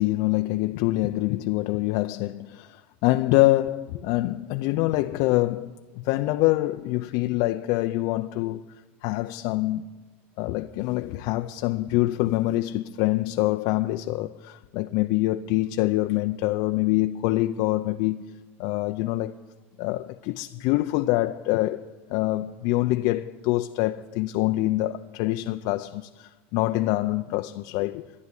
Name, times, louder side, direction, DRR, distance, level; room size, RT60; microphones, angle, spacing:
voice 1, 0.0-9.9 10.4-18.3 18.6-19.4 19.8-28.1, left 17 dB, 65° left, 0.5 m, -25 dB
12.5 x 10.5 x 9.9 m
supercardioid pair, 110°, 7 cm